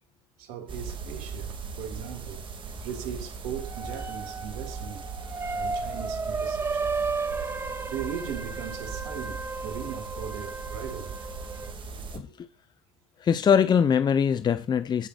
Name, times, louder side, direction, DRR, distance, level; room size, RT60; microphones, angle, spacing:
voice 1, 0.4-2.5 2.8-5.1 5.5-6.9 7.9-11.2 12.2-12.4, right 8 dB, 70° right, 2.5 m, -38 dB
sound 1, 0.7-12.2, right 5 dB, 35° right, 2.5 m, -39 dB
sound 2, 3.5-11.7, right 4 dB, 15° right, 1.0 m, -34 dB
voice 2, 12.1-12.5 13.2-15.1, left 7 dB, 30° left, 0.8 m, -22 dB
15.5 x 6.1 x 2.5 m
hypercardioid pair, 85°, 14 cm